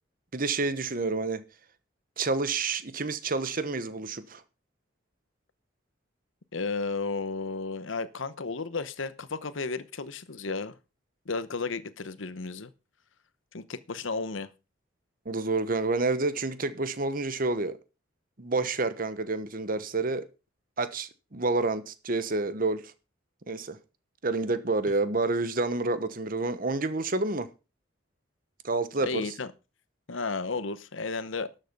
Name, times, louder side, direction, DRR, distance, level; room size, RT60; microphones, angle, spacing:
voice 1, 0.3-1.4 2.2-4.4 15.2-17.8 18.4-20.3 20.8-22.9 23.5-23.8 24.2-27.5 28.6-29.3, right 3 dB, 45° right, 1.1 m, -29 dB
voice 2, 6.5-10.8 11.3-12.7 13.5-14.5 29.0-29.5 30.1-31.5, left 4 dB, 80° left, 0.9 m, -33 dB
12.5 x 7.5 x 5.3 m
head